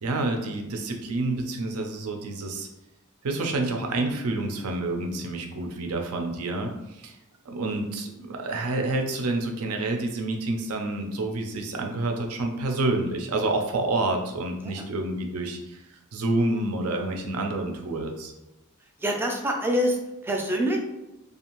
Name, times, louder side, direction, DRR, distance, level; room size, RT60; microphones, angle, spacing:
voice 1, 0.0-2.7 3.2-7.1 7.5-15.8 16.1-18.3, right 2 dB, 80° right, 3 dB, 0.5 m, -28 dB
voice 2, 19.0-20.8, equal, 10° right, 1 dB, 0.4 m, -26 dB
2.6 x 2.4 x 2.9 m, 0.94 s
head